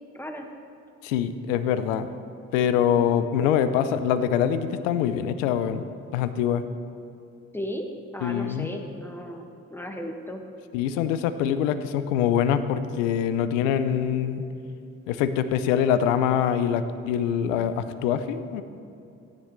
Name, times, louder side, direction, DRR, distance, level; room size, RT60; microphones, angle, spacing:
voice 1, 0.1-0.4 7.5-7.9 8.1-10.4, equal, 5° left, 3 dB, 1.5 m, -35 dB
voice 2, 1.0-2.1 2.5-5.8 6.1-6.6 8.2-8.7 10.7-14.5 15.1-18.6, left 9 dB, 85° left, 12 dB, 0.5 m, -24 dB
14.0 x 10.0 x 3.2 m, 2.7 s
hypercardioid pair, 40°, 37 cm